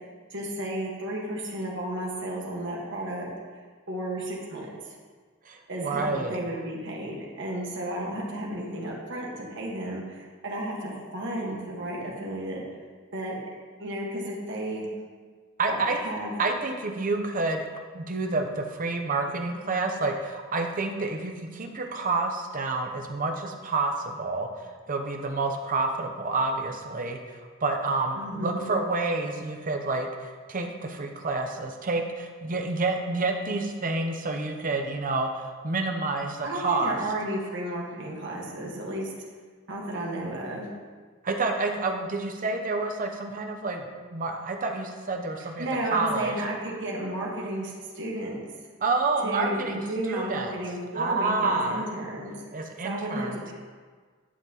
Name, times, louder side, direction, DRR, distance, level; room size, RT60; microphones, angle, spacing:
voice 1, 0.3-3.3 3.9-4.9 5.7-12.6 13.1-13.3 13.8-14.9 15.7-16.3 28.1-28.7 36.4-39.1 39.7-40.7 45.6-48.4 49.2-52.3 52.8-53.5, right 1 dB, 60° right, -2 dB, 1.5 m, -33 dB
voice 2, 5.4-6.4 15.6-16.0 16.4-17.7 17.9-37.0 41.2-46.3 48.8-50.5 50.9-51.9 52.5-53.4, right 3 dB, 40° right, 3 dB, 0.8 m, -29 dB
11.0 x 5.7 x 3.0 m, 1.5 s
head